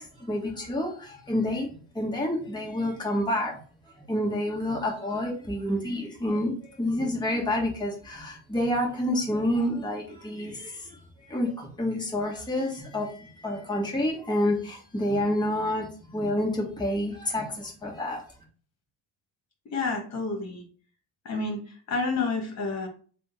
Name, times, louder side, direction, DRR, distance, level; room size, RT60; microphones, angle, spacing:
voice 1, 0.0-1.7 1.9-3.5 4.1-11.0 11.3-18.2, left 1 dB, 10° left, -3 dB, 1.5 m, -28 dB
voice 2, 19.7-20.6 21.3-22.9, left 3 dB, 40° left, 3 dB, 1.6 m, -29 dB
3.6 x 2.5 x 4.1 m, 0.41 s
supercardioid pair, 90°, 40 cm